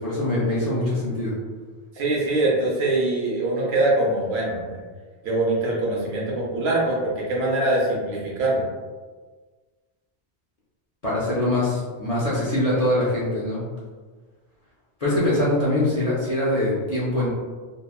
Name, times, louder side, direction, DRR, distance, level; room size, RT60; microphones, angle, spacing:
voice 1, 0.0-1.4 11.0-13.6 15.0-17.3, left 1 dB, 45° left, -8 dB, 0.6 m, -23 dB
voice 2, 2.0-4.8 5.2-8.7, right 2 dB, 70° right, -4 dB, 0.9 m, -23 dB
2.9 x 2.2 x 2.2 m, 1.4 s
omnidirectional pair, 1.2 m